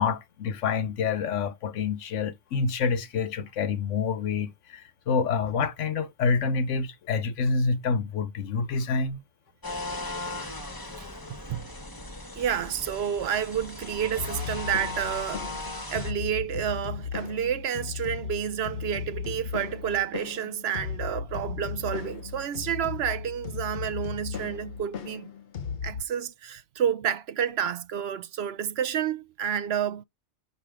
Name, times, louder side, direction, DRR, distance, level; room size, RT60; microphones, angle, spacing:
voice 1, 0.0-9.2, left 5 dB, 85° left, 1.2 m, -27 dB
sound 1, 9.6-16.1, left 2 dB, 20° left, 1.0 m, -37 dB
voice 2, 12.4-15.4 15.9-25.3 25.8-30.0, right 9 dB, 65° right, 0.8 m, -30 dB
sound 2, 14.2-26.0, left 6 dB, 55° left, 1.0 m, -36 dB
6.0 x 5.3 x 4.9 m
omnidirectional pair, 1.2 m